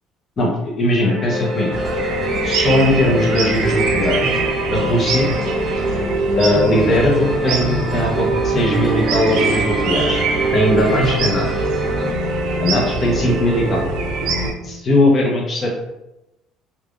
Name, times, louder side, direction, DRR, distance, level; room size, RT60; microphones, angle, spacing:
voice 1, 0.8-1.7 2.4-4.4 4.7-5.3 6.4-10.2 10.5-11.4 12.6-13.9 14.6-15.7, left 1 dB, 30° left, -2 dB, 0.7 m, -19 dB
sound 1, 1.0-14.5, right 1 dB, 35° right, 0.7 m, -24 dB
sound 2, 1.3-12.1, equal, 10° right, 0.9 m, -31 dB
sound 3, 1.7-14.5, right 5 dB, 70° right, 0.4 m, -25 dB
3.2 x 2.3 x 2.4 m, 0.92 s
cardioid pair, 130°, 0 cm